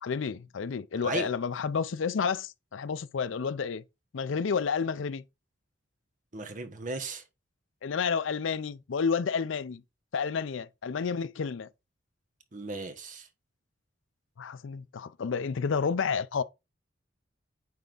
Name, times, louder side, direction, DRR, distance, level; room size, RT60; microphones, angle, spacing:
voice 1, 0.0-3.8 4.1-5.2 7.8-9.8 10.1-11.7 14.4-16.4, left 6 dB, 80° left, 0.5 m, -30 dB
voice 2, 6.3-7.2 12.5-13.3, right 3 dB, 40° right, 1.1 m, -36 dB
9.3 x 3.5 x 3.8 m
head